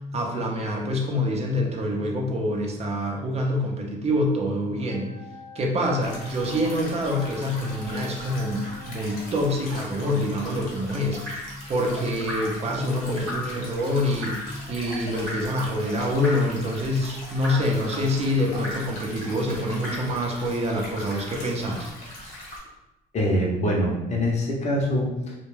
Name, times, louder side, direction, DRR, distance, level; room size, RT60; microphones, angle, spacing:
voice 1, 0.1-5.1 5.5-11.2 11.7-14.4 14.7-21.9, left 1 dB, 40° right, 0 dB, 0.5 m, -26 dB
sound 1, 4.9-9.0, left 2 dB, 85° left, 0.7 m, -45 dB
sound 2, 6.0-22.6, left 1 dB, 60° left, 1.0 m, -40 dB
Drip, 11.3-11.6 12.3-12.6 13.3-13.6 14.2-14.5 15.3-15.6 16.2-16.6 17.4-17.8 18.6-19.0 19.8-20.2 21.1-21.4 22.3-22.5, left 1 dB, 90° right, 0.8 m, -35 dB
voice 2, 23.1-25.3, equal, 40° left, -2 dB, 0.7 m, -24 dB
2.2 x 2.2 x 3.1 m, 0.93 s
cardioid pair, 110°, 17 cm